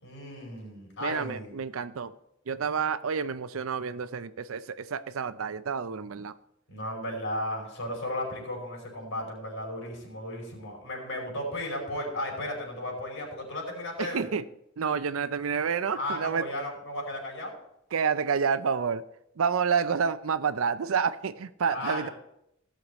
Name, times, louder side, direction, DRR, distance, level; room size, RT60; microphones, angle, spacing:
voice 1, 0.0-1.5 6.7-14.3 15.9-17.5 21.7-22.1, left 1 dB, 75° left, -1 dB, 5.0 m, -35 dB
voice 2, 1.0-2.1 2.5-6.3 14.0-14.5 14.8-16.5 17.9-19.0 19.4-22.1, right 6 dB, 75° right, 14 dB, 0.5 m, -29 dB
17.0 x 6.5 x 4.2 m, 0.81 s
head